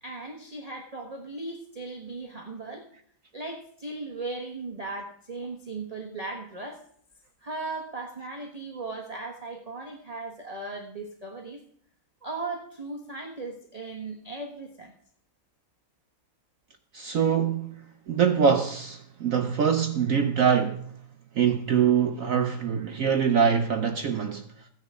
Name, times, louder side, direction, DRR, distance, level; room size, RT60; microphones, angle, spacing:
voice 1, 0.0-2.8 3.3-6.8 7.4-11.6 12.2-14.9, right 3 dB, 25° right, 1.1 m, -37 dB
voice 2, 16.9-17.8 18.1-20.9 21.4-24.4, right 7 dB, 75° right, 0.7 m, -24 dB
16.0 x 9.8 x 3.7 m
omnidirectional pair, 2.2 m